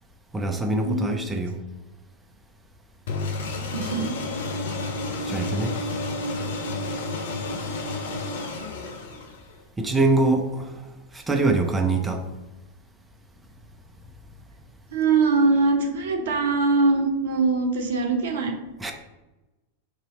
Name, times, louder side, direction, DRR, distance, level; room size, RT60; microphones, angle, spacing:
voice 1, 0.3-1.5 5.3-5.8 9.8-10.7 11.1-12.2 18.8-18.9, right 2 dB, 10° right, 4 dB, 0.5 m, -23 dB
sound 1, 3.1-9.6, left 2 dB, 60° left, 0.6 m, -31 dB
voice 2, 3.7-4.2 14.9-18.5, right 3 dB, 60° right, 4 dB, 0.6 m, -22 dB
3.1 x 2.8 x 3.9 m, 1.1 s
figure-of-eight pair, 90°, 0 cm